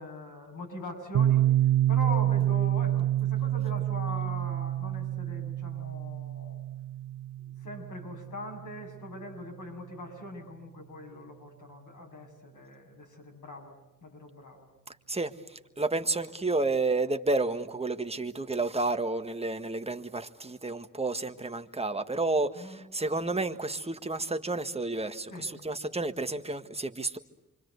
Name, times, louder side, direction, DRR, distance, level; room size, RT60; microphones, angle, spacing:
voice 1, 0.0-6.6 7.4-13.7 14.0-14.7 22.5-22.8 25.3-25.5, left 1 dB, 65° left, 2 dB, 7.8 m, -42 dB
Piano, 1.1-8.6, right 12 dB, 85° right, 1.0 m, -28 dB
voice 2, 15.1-27.2, right 2 dB, 20° right, 7 dB, 1.6 m, -31 dB
28.0 x 25.0 x 8.2 m, 0.95 s
cardioid pair, 90°, 33 cm